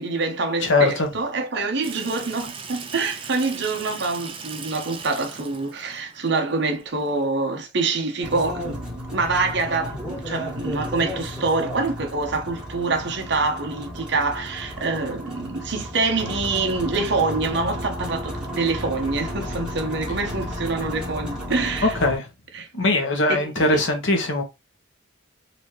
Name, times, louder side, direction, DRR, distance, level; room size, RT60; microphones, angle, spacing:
voice 1, 0.0-21.9 22.5-22.7 23.3-23.8, right 3 dB, 55° right, 0.9 m, -26 dB
voice 2, 0.6-1.1 21.8-22.3 22.7-24.4, left 2 dB, 60° left, 1.1 m, -21 dB
Water tap faucet / Sink (filling or washing), 1.8-7.2, right 5 dB, 25° right, 0.5 m, -39 dB
sound 1, 8.2-22.2, equal, 5° right, 1.6 m, -33 dB
4.1 x 2.8 x 3.1 m
head